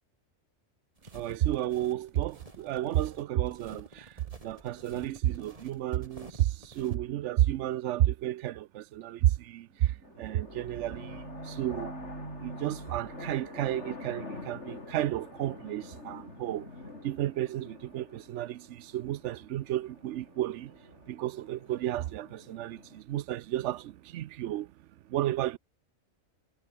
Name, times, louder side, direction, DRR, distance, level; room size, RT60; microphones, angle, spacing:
sound 1, 1.0-7.0, right 2 dB, 25° right, 2.9 m, -51 dB
voice 1, 1.1-4.1 4.4-11.9 12.4-16.7 17.0-20.8 21.1-24.7 25.1-25.6, right 13 dB, 70° right, 0.8 m, -32 dB
sound 2, 9.7-15.2, right 2 dB, 85° right, 6.9 m, -45 dB
sound 3, 10.0-23.0, left 3 dB, 55° left, 4.0 m, -47 dB
omnidirectional pair, 1.4 m